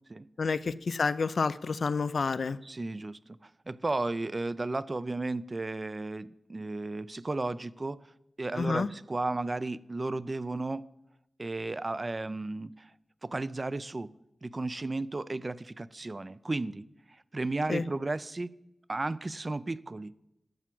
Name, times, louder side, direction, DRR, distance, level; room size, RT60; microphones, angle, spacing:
voice 1, 0.4-2.6 8.6-8.9 17.7-17.8, left 4 dB, 70° left, 16 dB, 0.4 m, -29 dB
voice 2, 2.6-8.0 8.4-10.8 11.4-12.9 13.2-14.1 14.4-16.8 17.3-18.5 18.9-20.3, right 2 dB, 35° right, 17 dB, 0.4 m, -34 dB
12.5 x 6.0 x 7.6 m, 0.87 s
wide cardioid pair, 80°, 0 cm